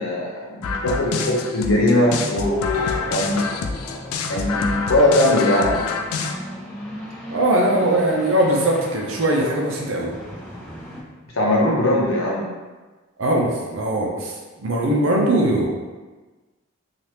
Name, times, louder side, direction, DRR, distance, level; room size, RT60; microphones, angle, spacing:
voice 1, 0.0-3.4 4.3-5.8 11.3-12.5, left 1 dB, 65° left, -3 dB, 0.7 m, -20 dB
sound 1, 0.6-6.4, left 4 dB, 85° left, 0.3 m, -27 dB
sound 2, 1.6-11.0, equal, 10° left, 0.4 m, -38 dB
voice 2, 7.3-10.1 13.2-15.7, right 1 dB, 60° right, -1 dB, 0.6 m, -20 dB
2.8 x 2.4 x 3.3 m, 1.3 s
head